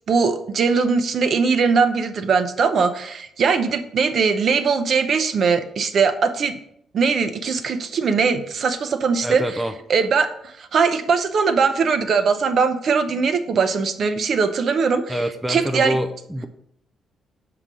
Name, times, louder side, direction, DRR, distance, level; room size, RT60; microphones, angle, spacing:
voice 1, 0.1-6.5 6.9-9.6 9.9-15.2 15.5-16.0, right 5 dB, 45° right, 8 dB, 0.7 m, -20 dB
voice 2, 9.2-9.7 15.1-16.5, right 1 dB, 5° right, 6 dB, 0.4 m, -26 dB
6.9 x 3.8 x 6.1 m, 0.72 s
cardioid pair, 155°, 0 cm